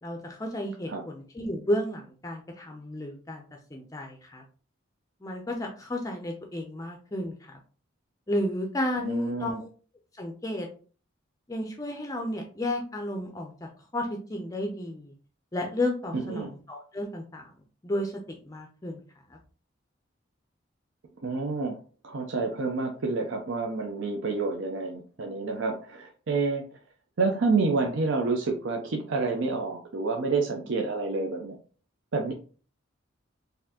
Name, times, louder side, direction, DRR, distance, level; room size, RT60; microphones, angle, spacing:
voice 1, 0.0-3.4 3.7-4.4 5.2-7.6 8.3-9.7 10.2-10.7 11.5-15.1 15.5-17.5 17.8-19.0 19.3-19.4, left 1 dB, 15° left, 2 dB, 0.4 m, -32 dB
voice 2, 9.0-9.6 16.1-16.5 21.2-21.7 22.0-26.6 27.2-31.5 32.1-32.3, right 3 dB, 70° right, 2 dB, 0.5 m, -28 dB
4.1 x 2.6 x 2.8 m, 0.39 s
head